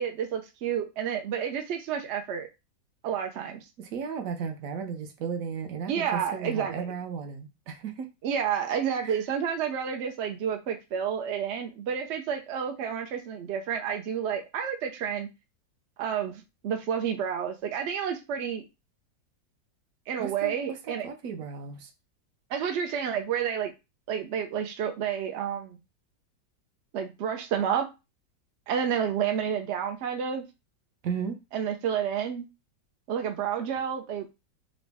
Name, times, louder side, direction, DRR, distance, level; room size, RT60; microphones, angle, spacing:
voice 1, 0.0-2.5 3.0-3.6 5.9-6.8 8.2-15.3 16.0-18.6 20.1-21.1 22.5-23.7 24.1-25.8 26.9-27.9 28.7-30.4 31.5-32.5 33.1-34.3, right 8 dB, 90° right, 0.6 m, -30 dB
voice 2, 3.8-8.1 9.0-9.2 20.2-21.9 31.0-31.4, right 6 dB, 65° right, 0.9 m, -35 dB
3.8 x 2.0 x 3.4 m
omnidirectional pair, 1.9 m